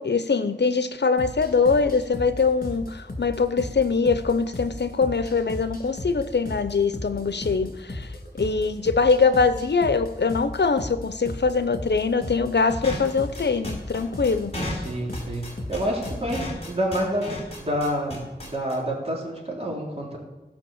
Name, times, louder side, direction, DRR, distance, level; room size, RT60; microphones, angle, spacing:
voice 1, 0.0-8.1 8.4-14.6, left 4 dB, 75° left, 12 dB, 0.7 m, -23 dB
sound 1, 1.2-16.5, left 1 dB, 55° left, 2.5 m, -36 dB
sound 2, 12.8-18.7, left 1 dB, 35° left, 4.0 m, -34 dB
voice 2, 14.7-20.2, equal, 35° right, -3 dB, 3.5 m, -28 dB
15.5 x 5.9 x 7.2 m, 1.1 s
wide cardioid pair, 60°, 18 cm